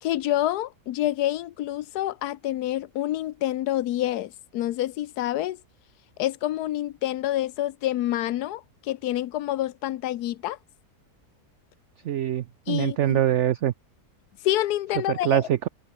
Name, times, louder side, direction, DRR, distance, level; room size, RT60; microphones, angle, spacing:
voice 1, 0.0-5.6 6.2-10.6 12.7-13.2 14.4-15.5, left 14 dB, 90° left, 1.2 m, -27 dB
voice 2, 12.0-13.7 15.1-15.7, right 11 dB, 60° right, 0.8 m, -24 dB
omnidirectional pair, 1.6 m